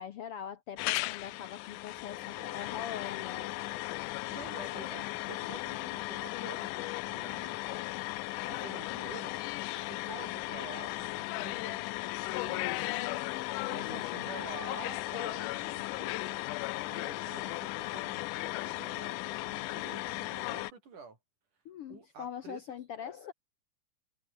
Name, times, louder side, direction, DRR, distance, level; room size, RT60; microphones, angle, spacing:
voice 1, 0.0-3.9 7.6-8.0 8.4-8.7 12.8-14.3 21.6-23.3, left 9 dB, 65° left, 1.4 m, -43 dB
sound 1, 0.7-12.2, equal, 5° left, 5.6 m, -65 dB
sound 2, 0.8-20.7, left 20 dB, 85° left, 2.1 m, -36 dB
voice 2, 2.2-3.0 3.5-3.8 4.3-7.6 8.5-9.4 9.8-11.9 12.3-13.0 13.7-16.4 16.8-21.2 21.9-22.6, right 5 dB, 75° right, 6.5 m, -49 dB
omnidirectional pair, 3.6 m